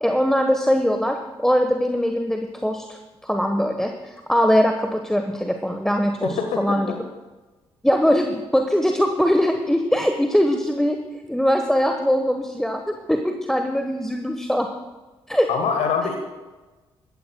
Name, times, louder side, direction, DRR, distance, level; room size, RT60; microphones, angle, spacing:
voice 1, 0.0-7.0 7.8-11.0 11.3-14.7 15.3-15.5, equal, 5° left, 6 dB, 1.1 m, -21 dB
voice 2, 6.2-6.8 15.5-16.2, left 6 dB, 60° left, 5 dB, 1.3 m, -24 dB
21.0 x 15.0 x 2.2 m, 1.2 s
figure-of-eight pair, 40°, 13 cm